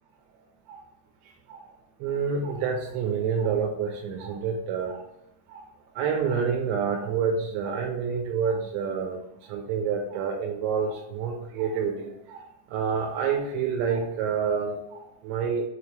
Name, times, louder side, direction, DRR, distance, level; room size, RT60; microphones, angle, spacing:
voice 1, 2.0-5.0 5.5-5.7 6.0-9.2 9.5-12.4 12.7-15.7, right 6 dB, 90° right, 0 dB, 3.1 m, -28 dB
7.0 x 4.5 x 3.3 m, 0.89 s
omnidirectional pair, 5.1 m